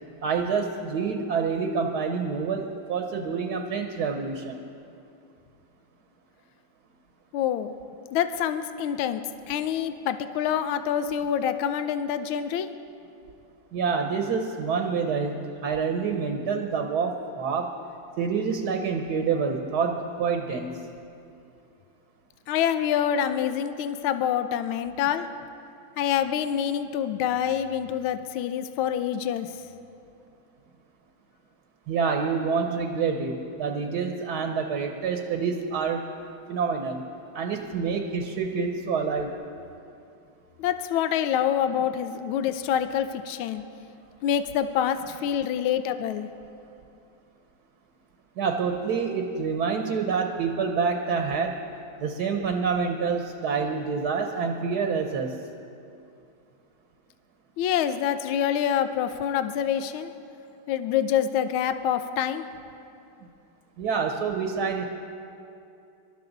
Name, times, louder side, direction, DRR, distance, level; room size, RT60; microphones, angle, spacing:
voice 1, 0.2-4.7 13.7-17.8 18.2-20.8 31.9-36.0 36.5-37.1 37.3-39.3 48.4-51.6 52.0-55.4 63.8-64.8, right 5 dB, 60° right, 4 dB, 1.2 m, -27 dB
voice 2, 7.3-7.7 8.1-12.7 22.5-25.3 26.0-29.5 40.6-43.6 44.2-46.3 57.6-60.1 60.7-62.4, left 9 dB, 80° left, 10 dB, 1.5 m, -26 dB
24.5 x 12.5 x 4.0 m, 2.6 s
omnidirectional pair, 2.3 m